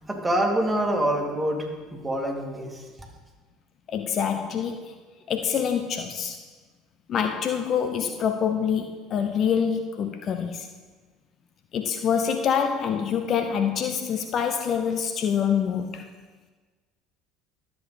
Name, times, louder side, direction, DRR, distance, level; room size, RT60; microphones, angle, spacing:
voice 1, 0.0-2.8, right 1 dB, 10° right, 0 dB, 2.4 m, -26 dB
voice 2, 3.9-4.9 5.3-6.4 7.1-10.7 11.7-16.1, left 7 dB, 45° left, 7 dB, 0.7 m, -26 dB
13.0 x 7.8 x 4.1 m, 1.4 s
hypercardioid pair, 65°, 0 cm